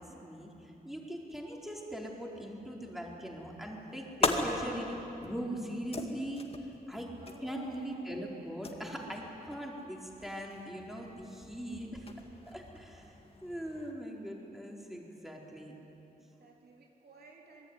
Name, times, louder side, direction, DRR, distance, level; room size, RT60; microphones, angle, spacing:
voice 1, 0.0-6.5 6.9-7.1 7.4-12.1 12.5-13.1 13.4-15.7, equal, ahead, -1 dB, 4.1 m, -41 dB
sound 1, 3.5-13.9, left 3 dB, 35° left, 2.3 m, -40 dB
voice 2, 7.0-8.2 16.2-17.7, right 2 dB, 80° right, 1 dB, 3.5 m, -56 dB
26.5 x 21.0 x 9.8 m, 3.0 s
wide cardioid pair, 115°, 16 cm